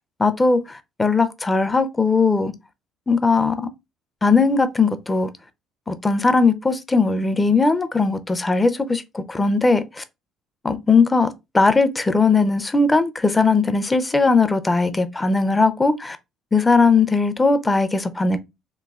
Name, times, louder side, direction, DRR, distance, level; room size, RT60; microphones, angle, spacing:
voice 1, 0.2-2.5 3.1-3.7 4.2-5.3 5.9-10.0 10.6-16.2 16.5-18.4, left 4 dB, 20° left, 0.5 m, -19 dB
3.1 x 2.3 x 2.3 m
supercardioid pair, 75°, 0 cm